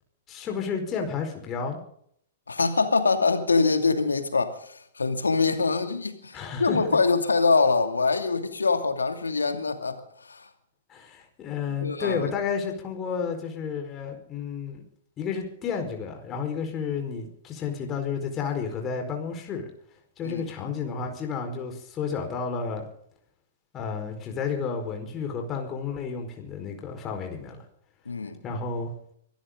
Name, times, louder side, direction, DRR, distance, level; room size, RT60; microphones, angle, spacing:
voice 1, 0.3-1.8 6.3-7.0 10.9-14.8 15.2-19.7 20.2-22.8 23.7-27.6 28.4-28.9, left 6 dB, 25° left, 3 dB, 4.6 m, -31 dB
voice 2, 2.5-10.5 11.7-12.3 20.2-20.5 28.1-28.4, left 4 dB, 90° left, 7 dB, 2.6 m, -24 dB
24.5 x 14.0 x 3.9 m, 0.66 s
hypercardioid pair, 115°, 0 cm